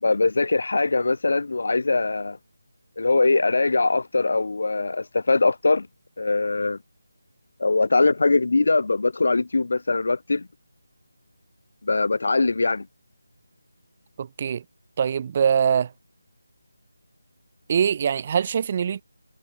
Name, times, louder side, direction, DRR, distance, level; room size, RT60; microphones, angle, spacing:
voice 1, 0.0-2.4 3.0-5.9 6.2-6.8 7.6-10.5 11.8-12.9, left 3 dB, 60° left, 0.7 m, -22 dB
voice 2, 14.2-14.6 15.0-15.9 17.7-19.0, right 7 dB, 30° right, 2.7 m, -23 dB
figure-of-eight pair, 160°, 0 cm